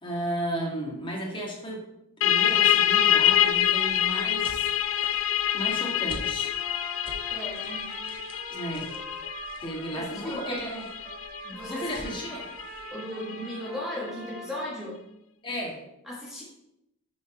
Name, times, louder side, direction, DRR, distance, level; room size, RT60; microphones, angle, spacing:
voice 1, 0.0-1.8 2.2-4.7 5.0-5.2 5.5-6.5 8.5-8.9 9.6-10.8 11.4-12.4 15.4-15.8, right 1 dB, 25° left, -2 dB, 1.8 m, -34 dB
sound 1, 2.2-13.6, left 11 dB, 65° left, 0.4 m, -26 dB
sound 2, 2.9-12.9, right 1 dB, 25° right, 1.2 m, -49 dB
Trumpet, 6.4-14.7, right 1 dB, 45° right, 1.5 m, -43 dB
voice 2, 7.3-7.9 9.9-10.6 11.5-12.2 12.9-15.0 16.0-16.4, left 1 dB, ahead, -6 dB, 1.4 m, -36 dB
6.8 x 4.0 x 5.5 m, 0.85 s
head